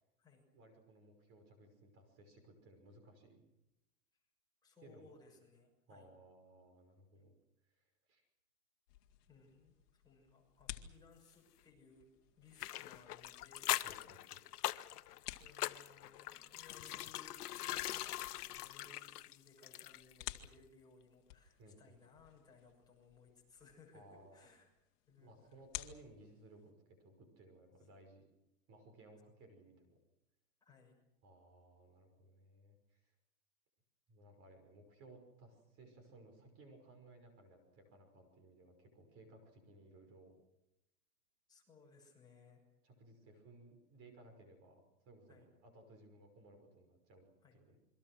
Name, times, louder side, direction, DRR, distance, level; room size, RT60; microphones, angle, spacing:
voice 1, 0.5-3.4 4.8-5.1 5.9-7.3 7.7-8.2 13.8-14.5 21.6-21.9 23.9-24.5 25.1-28.2 28.7-30.0 31.2-33.1 34.1-40.3 42.8-47.3 47.5-47.8, right 2 dB, 30° right, 5 dB, 5.9 m, -61 dB
voice 2, 4.6-6.1 9.3-12.1 12.4-13.8 15.3-24.7 25.1-25.5 30.6-31.0 41.5-42.6 45.3-45.5 47.4-47.6, left 4 dB, 10° left, -2 dB, 6.5 m, -63 dB
sound 1, 8.9-26.7, left 14 dB, 50° left, 2.1 m, -55 dB
sound 2, 12.6-20.2 20.4-20.5, left 14 dB, 75° left, 1.1 m, -42 dB
28.0 x 24.0 x 6.4 m, 0.88 s
supercardioid pair, 160°, 47 cm